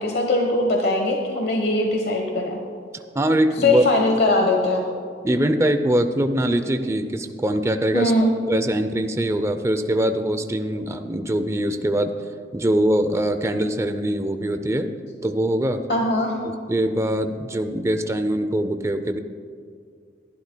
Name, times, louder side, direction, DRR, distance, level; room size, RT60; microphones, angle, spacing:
voice 1, 0.0-2.6 3.6-4.8 7.9-8.3 15.9-16.4, left 2 dB, 60° left, 2 dB, 1.1 m, -21 dB
voice 2, 2.9-3.8 5.2-8.1 8.5-12.1 12.5-15.0 15.2-15.8 16.4-19.2, right 1 dB, 15° right, 8 dB, 0.5 m, -22 dB
22.0 x 11.5 x 2.2 m, 2.2 s
head